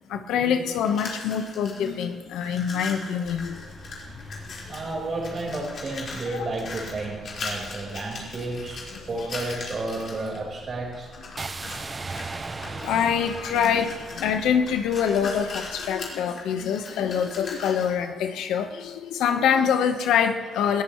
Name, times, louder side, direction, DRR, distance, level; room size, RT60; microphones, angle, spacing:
voice 1, 0.1-3.6 4.7-4.8 6.3-6.5 7.5-7.6 8.9-9.1 11.7-11.8 12.6-20.8, left 7 dB, 85° left, 7 dB, 1.2 m, -25 dB
sound 1, 0.7-2.0 2.3-4.9 5.2-10.4 10.9-11.8 12.1-18.0, left 3 dB, 55° left, 4.8 m, -39 dB
Traffic Small Town, 3.2-16.0, equal, 10° left, 3.6 m, -47 dB
voice 2, 4.7-11.1, right 2 dB, 45° right, -1 dB, 4.7 m, -32 dB
sound 2, 11.4-15.4, right 3 dB, 30° right, 0.5 m, -37 dB
20.5 x 15.0 x 3.2 m, 1.5 s
cardioid pair, 90°, 0 cm